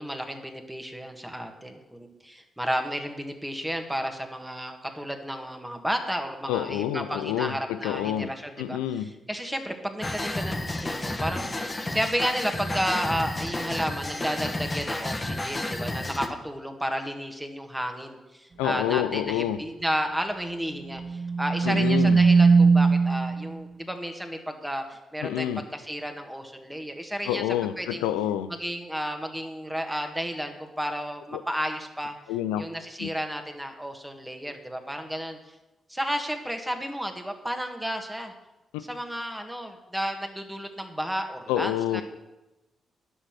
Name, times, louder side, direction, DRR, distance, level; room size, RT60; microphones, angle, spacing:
voice 1, 0.0-27.4 27.8-28.1 28.6-32.2 32.6-35.4 35.9-38.3 38.9-42.0, equal, 10° right, 5 dB, 1.7 m, -32 dB
voice 2, 6.5-8.3 8.6-9.1 18.6-19.6 21.6-22.2 25.2-25.6 27.2-28.5 31.3-31.4 32.3-32.6 33.0-33.1 41.5-42.0, left 11 dB, 85° left, 12 dB, 0.4 m, -28 dB
sound 1, 10.0-16.3, left 1 dB, 25° left, 1.3 m, -31 dB
sound 2, 21.0-23.5, right 4 dB, 40° right, 0.4 m, -20 dB
9.9 x 6.3 x 5.9 m, 1.0 s
hypercardioid pair, 40°, 0 cm